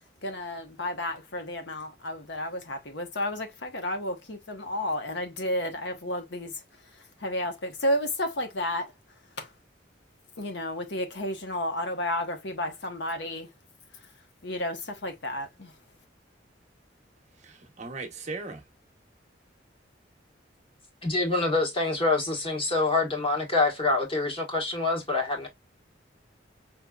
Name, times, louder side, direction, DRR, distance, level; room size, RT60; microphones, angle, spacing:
voice 1, 0.2-6.5 7.2-8.9 9.4-9.5 10.4-13.5 14.4-15.7, left 1 dB, 70° left, 1.1 m, -32 dB
voice 2, 17.4-18.6, right 3 dB, 40° right, 0.9 m, -38 dB
voice 3, 21.0-25.5, left 3 dB, 30° left, 1.5 m, -26 dB
5.4 x 3.1 x 2.4 m
head